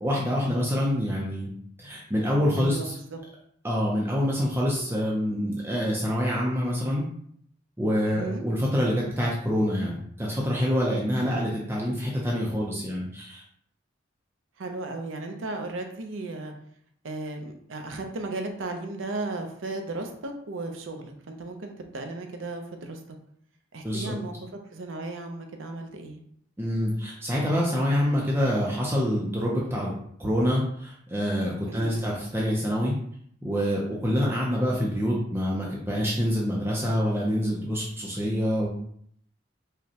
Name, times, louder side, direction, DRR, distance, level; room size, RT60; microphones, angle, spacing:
voice 1, 0.0-1.5 1.8-3.0 3.6-7.1 7.8-13.4 23.8-24.2 26.6-29.9 30.2-32.9 33.4-38.7, equal, 10° right, -4 dB, 0.5 m, -26 dB
voice 2, 2.5-3.2 8.1-8.4 11.2-11.5 14.6-16.5 17.0-23.2 23.7-26.2 31.7-32.1, right 2 dB, 85° right, 4 dB, 0.6 m, -35 dB
4.9 x 2.2 x 2.8 m, 0.66 s
head